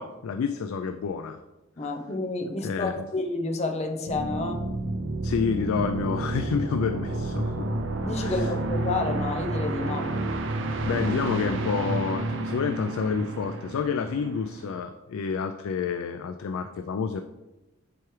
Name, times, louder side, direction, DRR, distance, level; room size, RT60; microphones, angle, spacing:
voice 1, 0.0-1.4 2.6-2.9 5.2-7.7 8.2-8.5 10.8-17.2, left 5 dB, 80° left, 8 dB, 0.3 m, -29 dB
voice 2, 1.8-4.6 8.0-10.1, left 2 dB, 30° left, 4 dB, 0.6 m, -30 dB
sound 1, 4.1-14.8, right 2 dB, 60° right, 0.5 m, -30 dB
7.6 x 4.8 x 3.1 m, 1.0 s
head